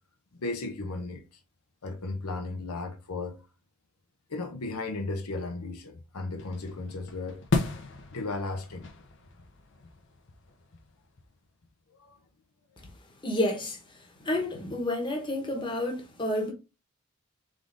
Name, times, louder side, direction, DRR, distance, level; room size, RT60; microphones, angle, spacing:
voice 1, 0.4-1.2 1.8-3.4 4.3-7.4 8.1-8.9 12.0-12.2, left 3 dB, 90° left, 0.9 m, -35 dB
sound 1, 6.4-11.7, left 3 dB, 55° left, 0.8 m, -35 dB
voice 2, 13.2-13.8 14.2-16.5, left 1 dB, 20° left, 1.1 m, -29 dB
3.8 x 3.7 x 3.8 m
head